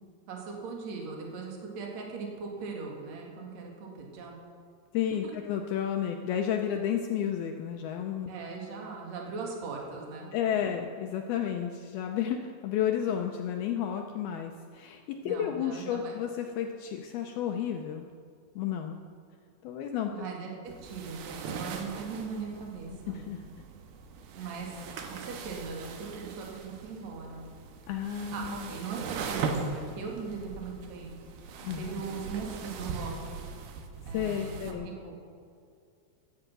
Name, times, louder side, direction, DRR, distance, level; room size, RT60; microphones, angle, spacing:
voice 1, 0.3-4.4 5.2-5.3 8.3-10.3 15.2-16.2 20.1-23.2 24.3-24.8 25.1-27.5 28.3-31.2 31.8-33.4 34.1-35.2, right 4 dB, 45° right, -1 dB, 2.9 m, -39 dB
voice 2, 4.9-8.3 10.3-18.1 18.6-19.0 19.6-20.3 23.1-23.4 27.9-28.7 31.6-31.9 34.1-34.9, left 9 dB, 80° left, 3 dB, 2.2 m, -32 dB
sound 1, 20.7-34.7, right 5 dB, 70° right, 2.7 m, -40 dB
15.5 x 11.5 x 6.1 m, 2.4 s
omnidirectional pair, 5.2 m